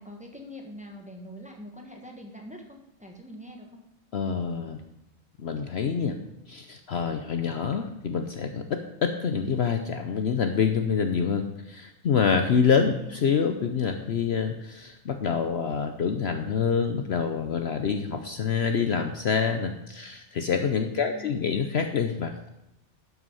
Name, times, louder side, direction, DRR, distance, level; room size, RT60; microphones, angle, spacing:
voice 1, 0.0-3.8 13.0-13.2 21.0-21.6, equal, 5° right, 1 dB, 1.4 m, -44 dB
voice 2, 4.1-4.8 5.4-6.2 6.5-22.5, left 6 dB, 55° left, 6 dB, 0.9 m, -26 dB
12.0 x 6.2 x 5.5 m, 0.90 s
omnidirectional pair, 1.4 m